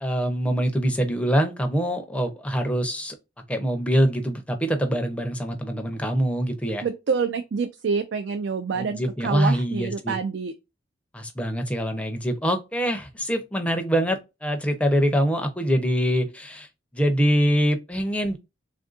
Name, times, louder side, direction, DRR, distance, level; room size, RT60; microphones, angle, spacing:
voice 1, 0.0-3.2 3.5-6.9 8.8-10.2 11.1-16.7 16.9-18.4, equal, 5° left, 0.5 m, -24 dB
voice 2, 6.8-10.5, right 5 dB, 60° right, 0.4 m, -27 dB
3.4 x 2.5 x 2.4 m
head